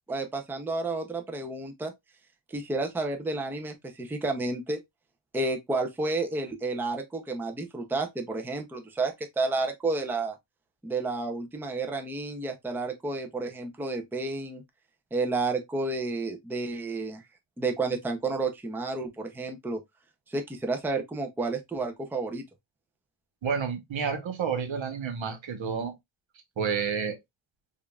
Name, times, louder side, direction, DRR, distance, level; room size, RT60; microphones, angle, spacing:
voice 1, 0.1-1.9 2.5-4.8 5.3-10.4 10.8-14.6 15.1-17.2 17.6-19.8 20.3-22.4, right 3 dB, 5° right, 0.4 m, -31 dB
voice 2, 23.4-25.9 26.6-27.2, right 6 dB, 75° right, 1.0 m, -30 dB
4.9 x 2.5 x 2.3 m
wide cardioid pair, 155°, 46 cm